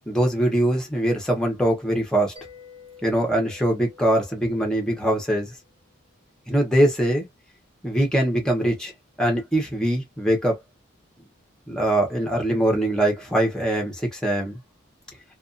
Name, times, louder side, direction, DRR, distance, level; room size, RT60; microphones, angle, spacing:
voice 1, 0.1-2.3 3.0-5.5 6.5-7.3 7.8-8.9 9.2-10.6 11.7-14.6, right 1 dB, 5° left, 0.9 m, -22 dB
Mallet percussion, 2.4-5.8, left 6 dB, 30° right, 0.9 m, -50 dB
2.5 x 2.4 x 2.5 m
head